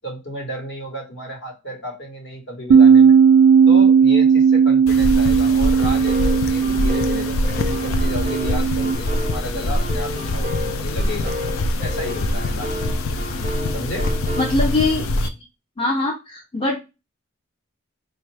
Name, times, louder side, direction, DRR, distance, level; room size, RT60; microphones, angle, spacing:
voice 1, 0.0-3.2 3.7-11.3 11.8-12.9 13.7-14.1, equal, 55° left, 1 dB, 1.3 m, -33 dB
Bass guitar, 2.7-9.0, right 6 dB, 80° right, 0.4 m, -15 dB
sound 1, 4.9-15.3, left 1 dB, 80° left, 0.5 m, -24 dB
sound 2, 5.8-14.5, left 1 dB, 30° right, 0.5 m, -33 dB
voice 2, 14.4-15.3 15.8-16.7, left 2 dB, 25° left, -1 dB, 0.6 m, -22 dB
4.4 x 2.5 x 3.2 m, 0.26 s
head